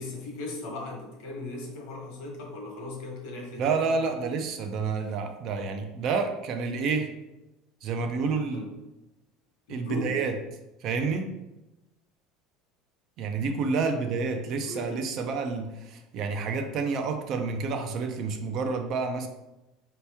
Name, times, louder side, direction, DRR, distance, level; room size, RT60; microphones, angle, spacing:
voice 1, 0.0-4.1 8.5-8.7 9.7-10.2 13.8-15.0, left 2 dB, 60° left, 0 dB, 1.1 m, -38 dB
voice 2, 3.6-7.1 7.8-8.6 9.7-10.3 10.8-11.3 13.2-19.3, right 4 dB, 40° right, 6 dB, 0.4 m, -29 dB
4.2 x 2.9 x 3.4 m, 0.98 s
cardioid pair, 175°, 0 cm